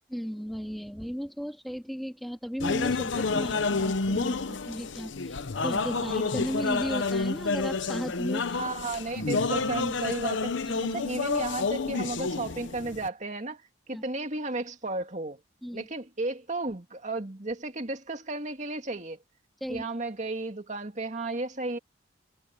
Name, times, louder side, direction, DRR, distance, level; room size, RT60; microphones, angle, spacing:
voice 1, 0.1-8.7 10.7-11.0 13.9-14.0 15.6-15.9 19.6-19.8, equal, ahead, 2.7 m, -35 dB
sound 1, 2.6-13.1, left 4 dB, 70° left, 0.8 m, -29 dB
voice 2, 8.6-10.6 10.9-13.6 13.9-15.4 15.7-19.2 19.7-21.8, right 2 dB, 35° right, 2.4 m, -33 dB
head